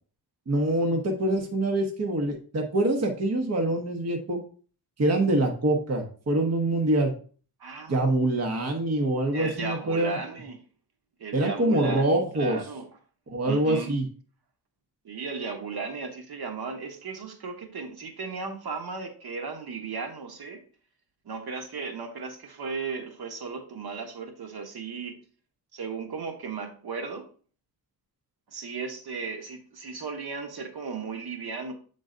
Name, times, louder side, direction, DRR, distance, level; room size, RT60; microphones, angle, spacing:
voice 1, 0.5-4.4 5.0-7.1 7.9-10.2 11.3-12.6 13.3-14.0, right 1 dB, 40° right, 2 dB, 1.0 m, -25 dB
voice 2, 7.6-8.0 9.3-10.6 11.2-12.9 13.4-13.9 15.0-20.6 21.2-25.2 25.7-27.3 28.5-31.7, right 5 dB, 70° right, 4 dB, 1.2 m, -36 dB
7.6 x 3.9 x 3.8 m, 0.41 s
wide cardioid pair, 165°, 39 cm